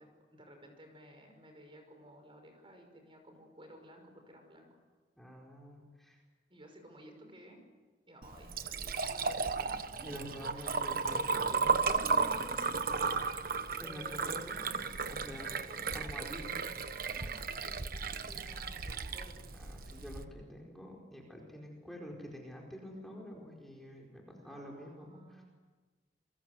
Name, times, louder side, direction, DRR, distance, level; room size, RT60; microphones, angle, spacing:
voice 1, 0.0-4.8 6.5-7.6 8.1-9.7 10.0-10.2 10.5-10.8 13.8-14.9 15.5-16.1 16.9-19.4 24.4-25.5, equal, 30° right, 5 dB, 5.6 m, -55 dB
voice 2, 5.2-6.2 10.0-12.8 13.8-15.5 15.9-16.5 18.2-18.4 19.5-25.4, equal, ahead, -1 dB, 4.8 m, -47 dB
Liquid, 8.2-20.2, right 5 dB, 55° right, 1.3 m, -34 dB
28.5 x 23.5 x 8.1 m, 1.3 s
head